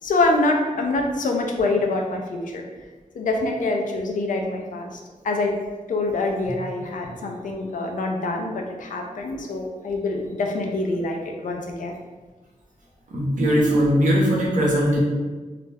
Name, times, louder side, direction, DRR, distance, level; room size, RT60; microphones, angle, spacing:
voice 1, 0.0-2.6 3.1-5.6 5.9-11.9, left 2 dB, 85° left, 2 dB, 0.4 m, -25 dB
voice 2, 13.1-15.0, equal, 75° right, -4 dB, 0.7 m, -20 dB
2.3 x 2.0 x 3.3 m, 1.3 s
wide cardioid pair, 150°, 13 cm